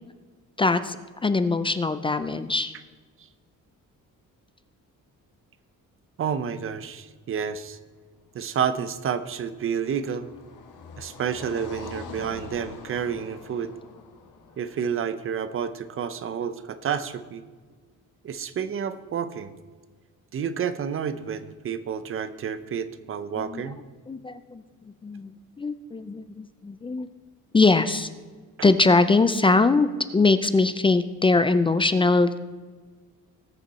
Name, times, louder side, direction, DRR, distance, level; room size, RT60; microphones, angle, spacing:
voice 1, 0.6-1.0 1.2-2.7 23.4-23.7 24.1-25.3 25.6-27.1 27.5-28.1 28.6-32.4, left 3 dB, 15° left, 11 dB, 0.3 m, -22 dB
voice 2, 6.2-7.8 8.3-10.3 11.0-13.7 14.6-17.4 18.2-19.5 20.3-23.8, right 7 dB, 40° right, 13 dB, 0.7 m, -30 dB
Car passing by, 8.9-15.9, left 4 dB, 65° left, 1.7 m, -44 dB
19.5 x 6.6 x 4.2 m, 1.4 s
cardioid pair, 160°, 33 cm